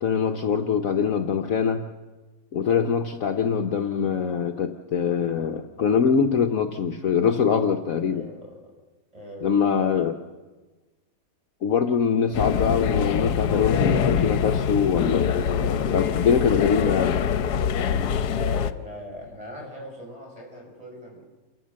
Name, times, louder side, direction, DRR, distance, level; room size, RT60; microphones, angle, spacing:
voice 1, 0.0-1.8 2.5-8.2 9.4-10.1 11.6-15.4 15.9-17.2, left 6 dB, 60° left, 5 dB, 1.2 m, -23 dB
voice 2, 8.1-8.7 9.1-10.1 18.3-21.2, equal, 20° right, -1 dB, 6.6 m, -40 dB
sound 1, 12.3-18.7, left 7 dB, 75° left, 1.4 m, -24 dB
28.0 x 14.0 x 7.5 m, 1.3 s
omnidirectional pair, 1.8 m